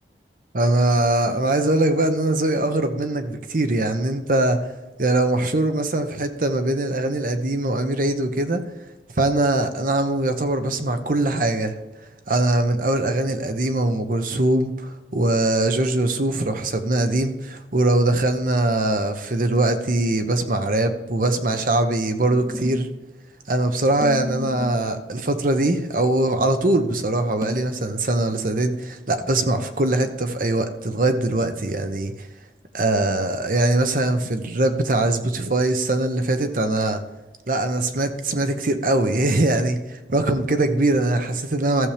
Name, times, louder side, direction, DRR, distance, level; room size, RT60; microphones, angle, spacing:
voice 1, 0.5-4.7 5.0-8.6 9.2-11.8 12.3-22.9 23.5-32.3 32.7-37.0 37.5-41.9, right 2 dB, 50° right, 8 dB, 0.9 m, -22 dB
sound 1, 22.2-23.0 24.0-25.0 27.4-28.5, left 1 dB, 20° right, 0.5 m, -34 dB
14.5 x 7.1 x 3.4 m, 1.1 s
head